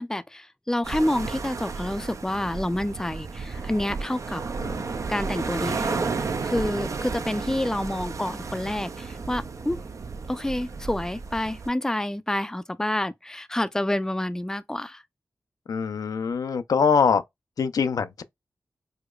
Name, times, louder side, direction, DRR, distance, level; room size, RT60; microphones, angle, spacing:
voice 1, 0.0-4.4 5.1-9.8 10.3-15.0, left 1 dB, 10° left, 0.4 m, -28 dB
sound 1, 0.8-11.7, right 4 dB, 60° right, 0.4 m, -32 dB
sound 2, 7.3-9.2, right 2 dB, 85° right, 1.1 m, -51 dB
voice 2, 15.7-17.2 17.6-18.2, left 6 dB, 80° left, 0.4 m, -23 dB
4.8 x 2.1 x 2.3 m
cardioid pair, 55°, 6 cm